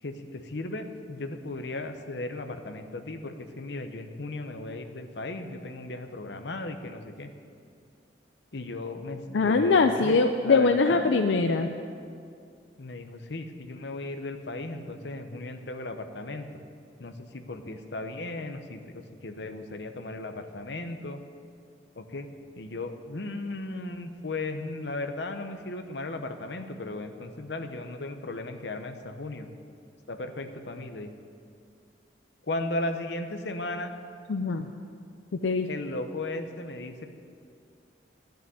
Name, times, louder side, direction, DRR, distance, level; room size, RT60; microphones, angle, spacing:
voice 1, 0.0-7.3 8.5-11.1 12.8-16.5 17.0-21.2 21.9-22.3 22.6-29.5 30.1-31.1 32.5-33.9 35.7-37.1, left 2 dB, 65° left, 7 dB, 0.9 m, -36 dB
voice 2, 9.3-11.7 34.3-34.7 35.3-35.7, left 4 dB, 85° left, 6 dB, 0.5 m, -22 dB
11.0 x 6.6 x 9.3 m, 2.4 s
head